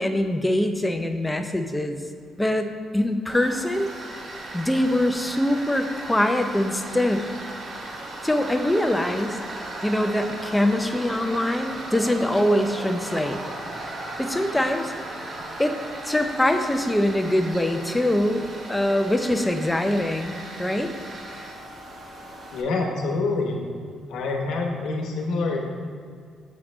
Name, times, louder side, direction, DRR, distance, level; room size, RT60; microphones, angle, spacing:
voice 1, 0.0-2.0 2.4-3.9 4.5-7.3 8.2-9.4 9.8-13.4 14.2-14.9 15.6-15.8 16.0-18.4 18.7-20.9, left 1 dB, 10° left, 6 dB, 0.5 m, -23 dB
Tools, 3.3-22.6, right 1 dB, 45° right, 0.9 m, -37 dB
voice 2, 22.5-23.6 24.1-25.6, left 3 dB, 80° left, 1 dB, 1.0 m, -26 dB
7.2 x 3.2 x 6.0 m, 2.1 s
cardioid pair, 90°, 0 cm